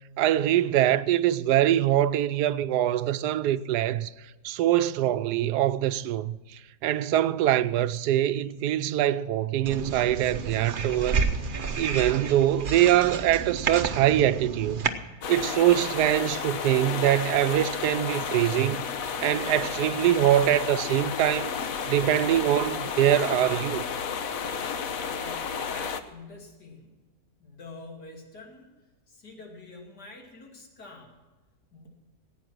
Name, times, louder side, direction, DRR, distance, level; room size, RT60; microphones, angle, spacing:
voice 1, 0.2-4.1 4.4-11.3 11.8-14.9 15.3-18.8 19.2-21.5 21.9-23.8, right 12 dB, 80° right, 1.1 m, -23 dB
sound 1, 9.7-14.9, right 5 dB, 40° right, 0.8 m, -30 dB
sound 2, 15.2-26.0, left 6 dB, 65° left, 1.2 m, -32 dB
voice 2, 25.0-27.0 27.4-28.7 29.1-31.1 31.7-31.9, left 3 dB, 80° left, 3.1 m, -46 dB
16.5 x 9.1 x 6.0 m
omnidirectional pair, 1.7 m